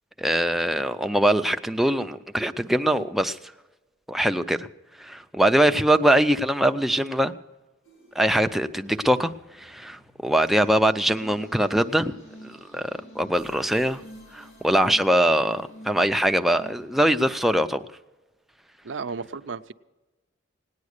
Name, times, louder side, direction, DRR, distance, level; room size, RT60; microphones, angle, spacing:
voice 1, 0.2-3.4 4.1-4.7 5.0-7.3 8.2-9.3 9.6-12.1 12.4-14.0 14.3-17.8, right 1 dB, ahead, 7 dB, 0.4 m, -22 dB
sound 1, 7.9-17.7, equal, 85° left, 5.1 m, -49 dB
voice 2, 18.8-19.7, right 5 dB, 75° right, 11 dB, 0.6 m, -33 dB
18.0 x 9.6 x 6.5 m, 1.1 s
head